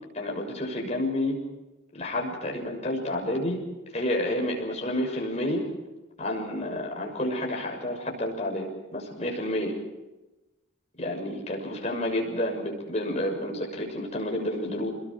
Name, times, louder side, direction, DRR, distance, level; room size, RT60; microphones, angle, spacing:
voice 1, 0.1-1.4 1.9-3.6 3.9-5.6 6.2-9.7 11.0-14.9, left 1 dB, 30° left, 0 dB, 6.7 m, -30 dB
29.5 x 22.0 x 4.9 m, 1.0 s
head